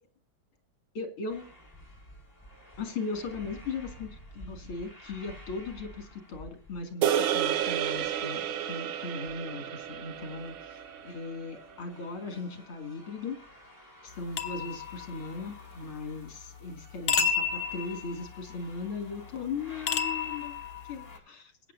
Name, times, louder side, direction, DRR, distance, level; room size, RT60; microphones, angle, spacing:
voice 1, 0.9-1.4 2.8-10.5 11.0-13.4 14.0-20.5 20.9-21.5, left 4 dB, 80° left, 7 dB, 3.3 m, -38 dB
sound 1, 1.3-21.2, equal, 15° left, 5.5 m, -52 dB
sound 2, 7.0-11.5, right 10 dB, 75° right, 1.6 m, -31 dB
sound 3, 14.4-15.6 17.1-18.5 19.9-21.2, left 6 dB, 55° left, 1.6 m, -31 dB
22.0 x 9.1 x 2.6 m, 0.38 s
omnidirectional pair, 2.3 m